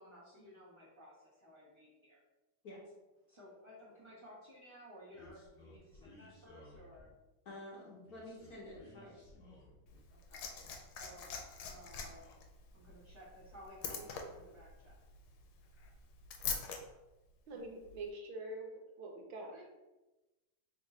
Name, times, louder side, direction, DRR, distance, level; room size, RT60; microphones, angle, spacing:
voice 1, 0.0-2.2 3.3-7.1 10.1-10.5 11.0-12.4 12.7-15.0 19.5-19.6, equal, 45° right, -10 dB, 0.3 m, -56 dB
sound 1, 5.1-7.3 8.0-10.0 10.4-11.3 11.6-12.4, left 1 dB, 40° left, 1.0 m, -59 dB
voice 2, 7.4-9.6 17.5-17.6, left 1 dB, 60° left, -5 dB, 1.1 m, -50 dB
Liquid, 9.9-16.8 17.9-18.0, left 6 dB, 80° left, 1.4 m, -44 dB
voice 3, 17.5-18.7 19.0-19.6, right 2 dB, 75° right, 2 dB, 1.4 m, -45 dB
3.6 x 2.5 x 4.0 m, 1.1 s
omnidirectional pair, 2.3 m